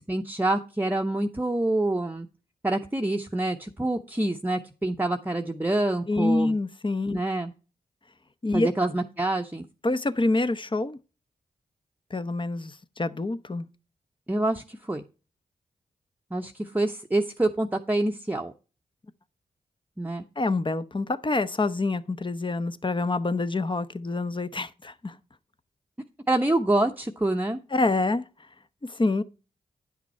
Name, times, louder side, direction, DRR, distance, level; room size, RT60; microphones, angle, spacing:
voice 1, 0.0-2.3 2.6-6.5 7.1-7.5 8.5-9.6 14.3-15.0 16.3-18.5 20.0-20.2 26.3-27.6, right 2 dB, 10° right, 0.9 m, -26 dB
voice 2, 6.1-7.2 8.4-8.7 9.8-11.0 12.1-13.7 20.4-25.1 27.7-28.2 28.9-29.2, left 2 dB, 30° left, 0.9 m, -26 dB
9.7 x 6.0 x 4.3 m
supercardioid pair, 40°, 16 cm